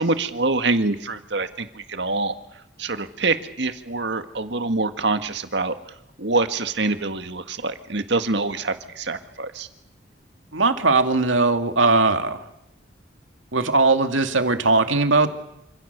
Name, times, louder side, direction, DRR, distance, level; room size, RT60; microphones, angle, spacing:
voice 1, 0.0-2.3 2.8-5.8 6.2-9.7, right 3 dB, 65° right, 9 dB, 1.8 m, -25 dB
voice 2, 10.5-12.4 13.5-15.3, right 3 dB, 85° right, 7 dB, 2.4 m, -19 dB
28.5 x 26.5 x 6.8 m, 0.85 s
head